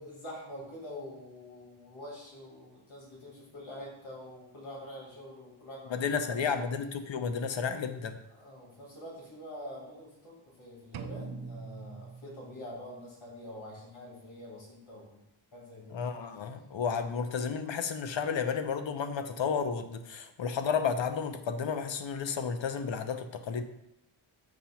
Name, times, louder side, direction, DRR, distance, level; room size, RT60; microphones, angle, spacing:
voice 1, 0.0-6.4 8.3-15.2 15.5-16.0, left 1 dB, 85° left, -4 dB, 2.4 m, -46 dB
voice 2, 5.9-8.2 15.9-23.6, left 6 dB, 70° left, 8 dB, 0.7 m, -32 dB
sound 1, 10.9-12.9, right 5 dB, 80° right, 0.6 m, -43 dB
7.4 x 2.9 x 5.7 m, 0.84 s
wide cardioid pair, 115°, 47 cm